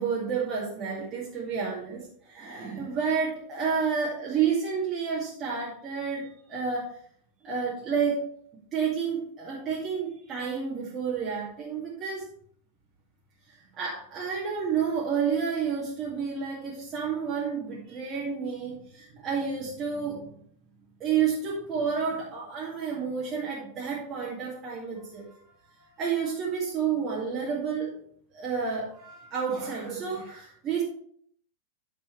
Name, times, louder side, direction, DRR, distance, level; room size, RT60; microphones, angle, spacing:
voice 1, 0.0-6.9 7.4-8.3 8.7-12.3 13.7-20.3 21.0-25.4 25.8-27.9 28.3-30.8, right 6 dB, 30° right, -5 dB, 2.2 m, -30 dB
9.4 x 7.1 x 3.3 m, 0.62 s
figure-of-eight pair, 90°, 0 cm